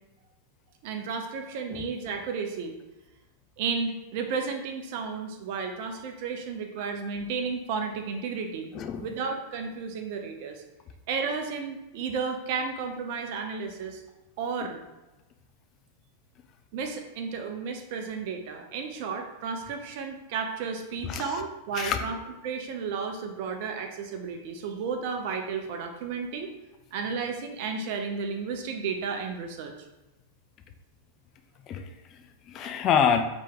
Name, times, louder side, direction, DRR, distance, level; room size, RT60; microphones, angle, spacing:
voice 1, 0.8-2.7 3.6-8.7 9.0-10.6 11.1-14.0 14.4-14.8 16.7-22.2 22.4-26.5 26.9-29.7 32.6-32.7, right 5 dB, 50° right, 5 dB, 0.6 m, -33 dB
voice 2, 8.7-9.1 21.0-21.4 21.7-22.0 31.7-33.2, left 7 dB, 35° left, 6 dB, 0.4 m, -27 dB
4.4 x 3.0 x 3.7 m, 1.0 s
figure-of-eight pair, 90°, 0 cm